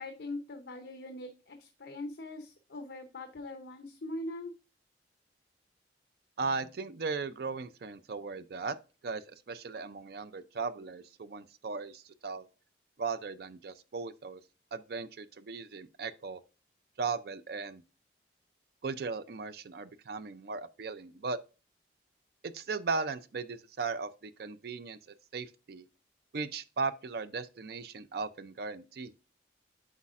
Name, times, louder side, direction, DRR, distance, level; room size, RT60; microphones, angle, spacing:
voice 1, 0.0-4.5, left 2 dB, 65° left, 0.7 m, -41 dB
voice 2, 6.4-8.8 9.0-12.5 13.0-14.4 14.7-16.4 17.0-17.8 18.8-21.4 22.4-25.0 25.3-25.9 26.3-29.1, right 4 dB, 55° right, 0.4 m, -37 dB
8.2 x 4.9 x 2.4 m
head